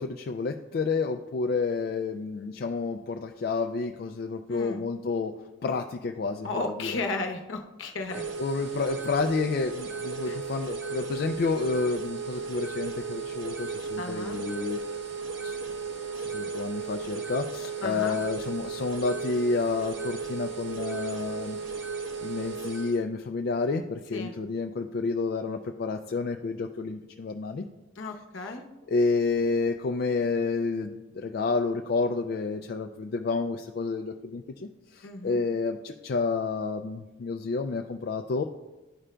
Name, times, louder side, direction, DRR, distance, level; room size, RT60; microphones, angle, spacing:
voice 1, 0.0-5.4 5.6-6.9 8.4-14.8 15.4-15.6 16.1-21.6 22.2-27.6 28.9-38.4, left 4 dB, 50° left, 5 dB, 0.3 m, -30 dB
voice 2, 4.5-4.8 6.4-8.2 10.2-10.4 14.0-14.4 17.8-18.2 24.1-24.3 28.0-28.7 35.0-35.4, left 3 dB, 70° left, 4 dB, 0.8 m, -34 dB
sound 1, 8.1-23.0, right 5 dB, 65° right, 0.9 m, -35 dB
12.0 x 4.9 x 2.2 m, 1.1 s
head